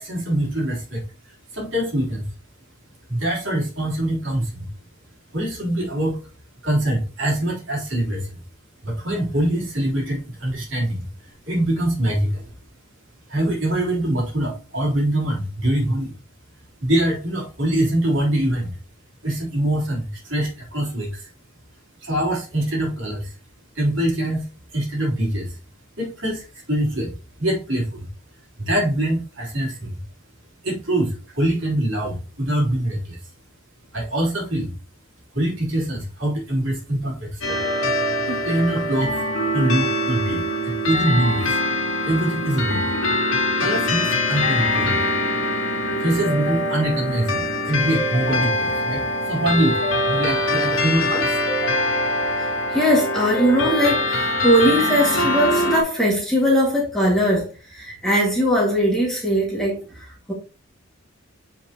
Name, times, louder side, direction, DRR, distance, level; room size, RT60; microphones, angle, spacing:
voice 1, 0.0-2.3 3.1-4.7 5.3-6.2 6.6-8.3 8.8-11.1 11.5-12.5 13.3-16.1 16.8-18.7 19.2-21.3 22.0-23.3 23.7-24.4 24.7-25.6 26.0-27.1 27.4-28.1 28.6-30.0 30.6-33.2 33.9-34.7 35.3-37.6 38.3-39.2 39.5-41.6 42.0-42.9 43.6-45.1 46.0-51.4, right 1 dB, 55° right, 3.3 m, -24 dB
sound 1, 37.4-55.8, left 1 dB, 70° left, 2.3 m, -23 dB
voice 2, 52.7-60.3, equal, ahead, 1.9 m, -20 dB
7.5 x 5.1 x 2.9 m
head